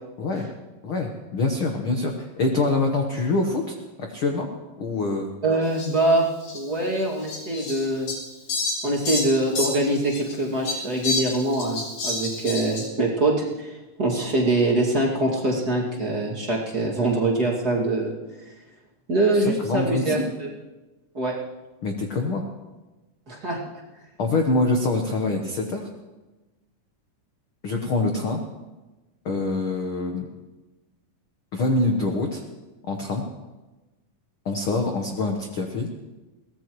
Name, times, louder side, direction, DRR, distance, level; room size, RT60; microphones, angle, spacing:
voice 1, 0.8-4.5 4.8-5.3 19.3-20.2 21.8-22.4 24.2-25.9 27.6-28.4 29.2-30.3 31.5-32.4 32.9-33.2 34.4-35.9, left 3 dB, 60° left, 2 dB, 1.4 m, -25 dB
voice 2, 5.4-6.3 6.5-8.1 8.8-18.1 19.1-20.5 21.1-21.3 23.3-23.6, right 2 dB, 30° right, -4 dB, 2.4 m, -23 dB
Fowl, 5.8-5.9 6.4-6.6 7.3-10.3 10.6-12.9, left 2 dB, 85° left, 5.2 m, -29 dB
22.5 x 18.0 x 3.1 m, 1.1 s
omnidirectional pair, 4.0 m